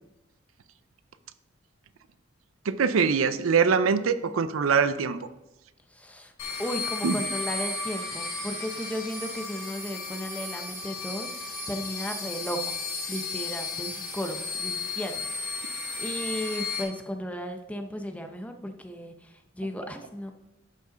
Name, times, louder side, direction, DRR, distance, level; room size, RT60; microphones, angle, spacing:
voice 1, 2.7-5.2 7.0-7.2, right 5 dB, 85° right, 13 dB, 0.5 m, -23 dB
voice 2, 5.9-6.3 6.6-12.8 13.1-20.3, equal, 5° left, 5 dB, 0.6 m, -35 dB
sound 1, 6.4-16.8, left 3 dB, 85° left, 2.3 m, -34 dB
11.5 x 5.4 x 3.9 m, 0.96 s
head